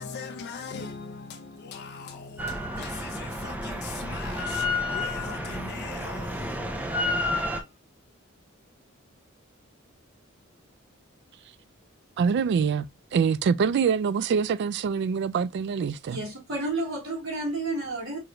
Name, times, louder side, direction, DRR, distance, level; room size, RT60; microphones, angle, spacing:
voice 1, 0.0-7.7, left 5 dB, 55° left, 0.5 m, -41 dB
Drill, 2.4-7.6, left 2 dB, 10° right, 0.6 m, -30 dB
voice 2, 12.2-12.8 13.1-16.3, right 6 dB, 55° right, 0.3 m, -25 dB
voice 3, 16.1-18.2, right 2 dB, 75° right, 1.5 m, -31 dB
4.8 x 2.6 x 2.9 m
head